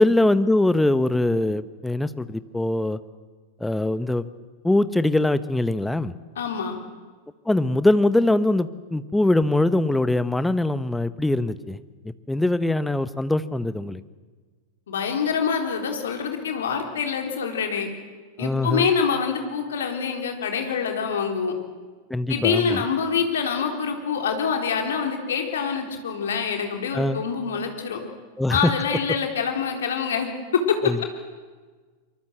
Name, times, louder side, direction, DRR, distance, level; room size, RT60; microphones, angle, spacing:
voice 1, 0.0-3.0 3.6-4.2 4.6-6.1 7.5-14.0 18.4-18.9 22.1-22.8 26.9-27.2 28.4-28.7 30.8-31.0, left 2 dB, 5° left, 14 dB, 1.0 m, -22 dB
voice 2, 6.4-6.8 14.9-17.9 18.4-21.5 22.3-28.0 28.5-30.9, left 6 dB, 65° left, 3 dB, 3.8 m, -25 dB
24.5 x 23.5 x 7.8 m, 1.4 s
figure-of-eight pair, 90°, 0 cm